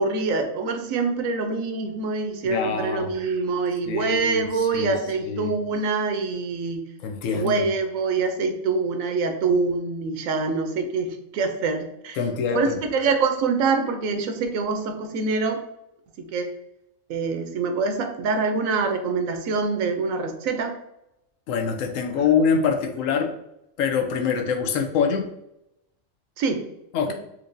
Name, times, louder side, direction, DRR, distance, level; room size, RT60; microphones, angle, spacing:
voice 1, 0.0-6.8 7.3-12.2 12.5-15.6 16.2-16.5 17.1-20.7 26.4-26.6 27.1-27.2, right 4 dB, 80° right, 6 dB, 1.0 m, -25 dB
voice 2, 2.5-3.1 3.9-4.9 5.3-5.5 7.0-7.6 12.2-12.7 21.5-23.3 23.8-25.3 26.9-27.1, left 6 dB, 75° left, 4 dB, 0.9 m, -24 dB
4.4 x 2.6 x 2.5 m, 0.83 s
omnidirectional pair, 1.4 m